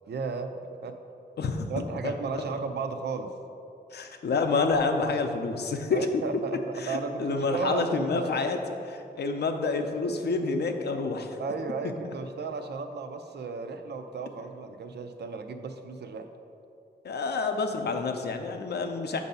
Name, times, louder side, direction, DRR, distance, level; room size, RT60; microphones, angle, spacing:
voice 1, 0.1-1.0 1.7-3.3 5.9-8.3 11.4-16.3, right 4 dB, 80° right, 7 dB, 0.4 m, -34 dB
voice 2, 3.9-6.1 6.8-8.6 8.8-11.4 12.0-12.1 17.0-19.2, left 4 dB, 80° left, 5 dB, 0.5 m, -28 dB
7.6 x 2.7 x 5.3 m, 2.6 s
wide cardioid pair, 175°, 17 cm